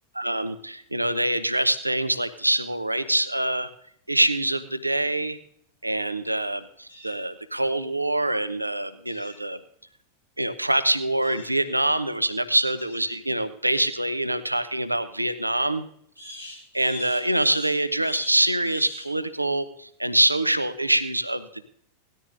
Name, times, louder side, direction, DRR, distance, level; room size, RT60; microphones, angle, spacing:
voice 1, 0.1-3.7 4.1-5.4 5.8-9.6 10.4-15.9 16.7-21.7, right 1 dB, 85° right, 12 dB, 0.8 m, -25 dB
sound 1, 6.9-7.2 9.1-9.4 11.2-11.6 12.8-13.1 16.2-19.1, left 2 dB, 90° left, 4.7 m, -41 dB
18.5 x 13.5 x 2.6 m, 0.66 s
figure-of-eight pair, 90°, 0 cm